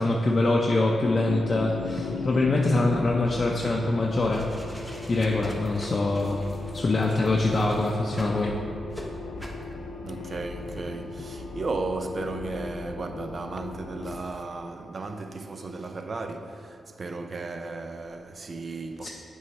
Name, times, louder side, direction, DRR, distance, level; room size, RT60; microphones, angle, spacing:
voice 1, 0.0-4.5 4.7-8.6 19.0-19.1, left 2 dB, 45° left, 0.5 m, -24 dB
sound 1, 1.0-14.2, left 4 dB, 90° left, 0.5 m, -37 dB
sound 2, 4.0-8.4 8.9-9.1 9.4-9.6, equal, 15° right, 1.1 m, -45 dB
voice 2, 10.0-19.1, right 3 dB, 50° right, 0.5 m, -35 dB
7.3 x 4.7 x 4.1 m
cardioid pair, 65°, 0 cm